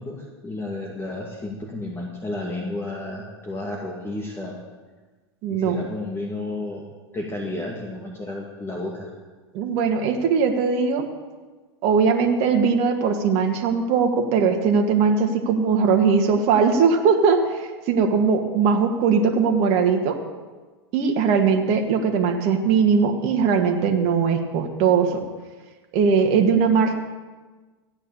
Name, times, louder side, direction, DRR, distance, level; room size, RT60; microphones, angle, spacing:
voice 1, 0.0-4.6 5.5-6.9 7.1-9.1, left 2 dB, 15° left, -1 dB, 2.3 m, -32 dB
voice 2, 5.4-5.8 9.5-11.1 11.8-20.2 20.9-25.2 25.9-26.9, right 5 dB, 50° right, 3 dB, 1.8 m, -20 dB
14.5 x 9.2 x 7.0 m, 1.3 s
hypercardioid pair, 95°, 14 cm